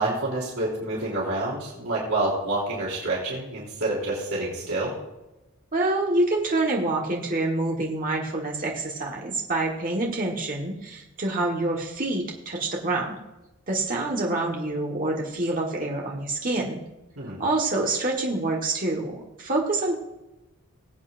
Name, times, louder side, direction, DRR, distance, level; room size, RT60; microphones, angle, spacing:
voice 1, 0.0-4.9 17.2-17.4, right 2 dB, 80° right, -4 dB, 3.4 m, -28 dB
voice 2, 5.7-13.1 13.7-16.8 17.4-19.9, right 2 dB, 40° right, -1 dB, 1.5 m, -26 dB
20.5 x 8.3 x 2.6 m, 0.99 s
head